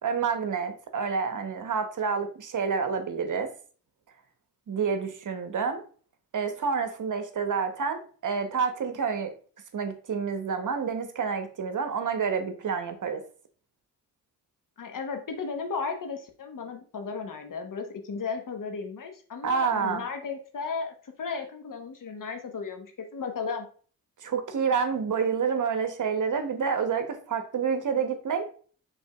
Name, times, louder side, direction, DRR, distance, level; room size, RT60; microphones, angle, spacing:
voice 1, 0.0-3.5 4.7-5.8 6.3-9.3 9.7-13.2 19.4-20.0 24.2-28.5, right 6 dB, 50° right, 7 dB, 0.9 m, -28 dB
voice 2, 14.8-23.7, left 5 dB, 55° left, 5 dB, 1.0 m, -35 dB
5.4 x 3.5 x 2.3 m, 0.42 s
supercardioid pair, 45°, 38 cm